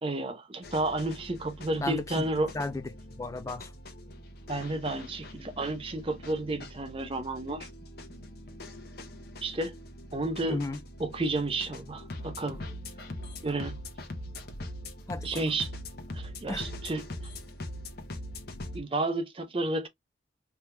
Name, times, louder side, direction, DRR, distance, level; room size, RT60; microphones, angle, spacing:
voice 1, 0.0-2.5 4.5-7.7 9.4-9.7 10.1-10.6 11.0-12.6 13.4-13.7 15.2-15.7 16.1-17.1 18.7-19.9, right 2 dB, 25° right, 0.6 m, -31 dB
sound 1, 0.6-18.8, left 1 dB, 50° left, 0.8 m, -42 dB
voice 2, 1.8-2.3 2.5-3.7 10.4-10.8 15.1-15.4 16.5-16.6, left 2 dB, 15° left, 0.3 m, -34 dB
3.4 x 2.8 x 2.2 m
head